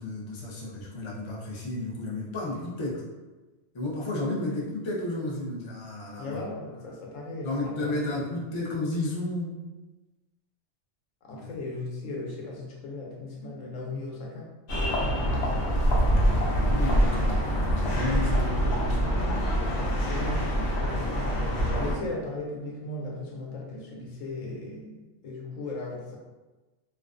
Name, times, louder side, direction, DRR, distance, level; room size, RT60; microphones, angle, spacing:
voice 1, 0.0-3.0 3.7-6.4 7.4-9.6 11.4-11.5 15.7-19.5, left 2 dB, 50° left, -5 dB, 0.3 m, -33 dB
voice 2, 6.2-8.1 11.2-14.5 20.1-20.5 20.8-21.4 21.7-26.2, left 2 dB, 85° left, -2 dB, 1.0 m, -37 dB
sound 1, 14.7-22.0, equal, 65° left, 0.8 m, -25 dB
2.5 x 2.1 x 2.4 m, 1.2 s
omnidirectional pair, 1.3 m